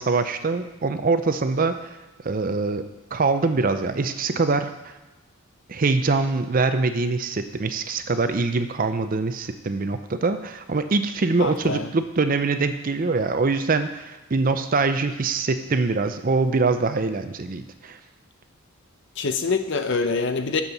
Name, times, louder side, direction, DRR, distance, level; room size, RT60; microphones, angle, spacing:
voice 1, 0.0-1.7 2.2-2.8 3.1-4.9 5.7-18.0, right 3 dB, 40° right, 9 dB, 0.5 m, -23 dB
voice 2, 11.4-11.9 19.2-20.6, left 4 dB, 55° left, 8 dB, 0.7 m, -25 dB
7.2 x 6.7 x 5.9 m, 1.1 s
head